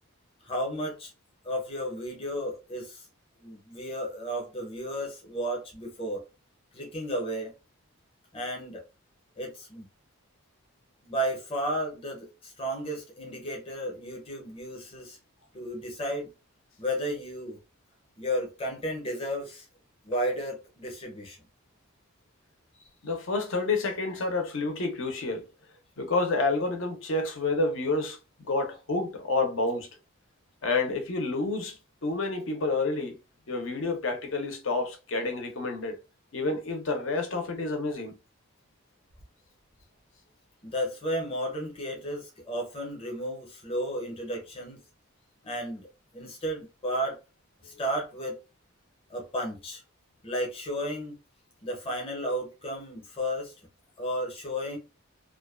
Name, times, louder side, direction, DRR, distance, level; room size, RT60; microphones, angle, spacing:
voice 1, 0.4-1.1 1.4-3.0 3.4-6.2 6.7-7.5 8.3-8.8 9.4-9.9 11.0-15.2 15.5-16.3 16.8-17.6 18.2-19.7 20.0-21.4 40.6-44.8 45.4-47.2 47.6-48.4 49.1-49.8 50.2-51.2 51.6-53.5 54.0-54.8, equal, 25° left, 0.7 m, -33 dB
voice 2, 23.0-25.5 26.0-29.9 30.6-31.8 32.0-33.2 33.5-36.0 36.3-38.1, left 3 dB, 65° left, 0.7 m, -29 dB
2.5 x 2.2 x 2.3 m
head